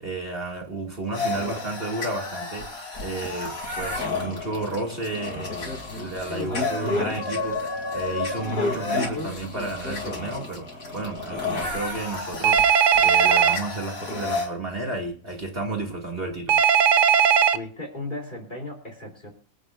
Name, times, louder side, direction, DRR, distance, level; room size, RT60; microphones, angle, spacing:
voice 1, 0.0-16.6, right 2 dB, 45° right, 2.4 m, -32 dB
sound 1, 1.1-14.5, left 3 dB, 85° left, 3.5 m, -31 dB
Telephone, 12.4-13.6 16.5-17.6, right 7 dB, 70° right, 1.1 m, -18 dB
voice 2, 17.5-19.3, left 2 dB, 35° left, 3.6 m, -36 dB
25.5 x 9.0 x 2.5 m
omnidirectional pair, 1.4 m